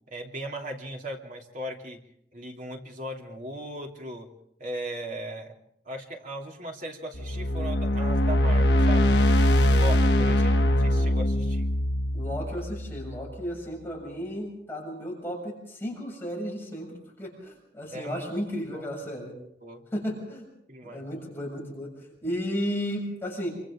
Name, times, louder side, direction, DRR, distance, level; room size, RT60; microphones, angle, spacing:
voice 1, 0.1-2.0 2.3-4.3 4.6-5.5 5.8-9.0 9.7-11.7 17.9-18.2 18.7-18.9 19.6-19.8 20.7-21.0, right 1 dB, 50° right, 1 dB, 3.2 m, -37 dB
sound 1, 7.1-13.3, left 1 dB, 65° left, 1.2 m, -22 dB
voice 2, 12.1-19.3 19.9-20.5 20.8-23.5, equal, 15° left, -3 dB, 7.1 m, -34 dB
27.5 x 25.0 x 3.8 m, 0.73 s
head